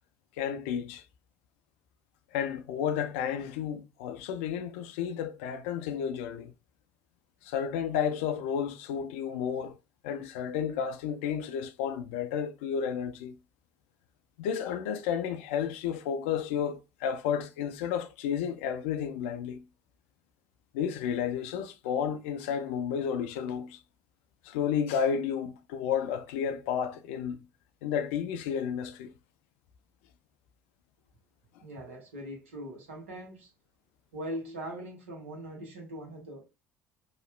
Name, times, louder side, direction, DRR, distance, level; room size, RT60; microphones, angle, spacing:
voice 1, 0.4-1.0 2.3-6.5 7.4-9.7 10.0-13.3 14.4-19.6 20.7-23.8 24.4-27.4 27.8-29.1, left 8 dB, 75° left, 0.4 m, -32 dB
voice 2, 31.6-33.5 34.1-36.5, right 1 dB, 80° right, 1.0 m, -41 dB
2.9 x 2.3 x 3.1 m
hypercardioid pair, 55°, 7 cm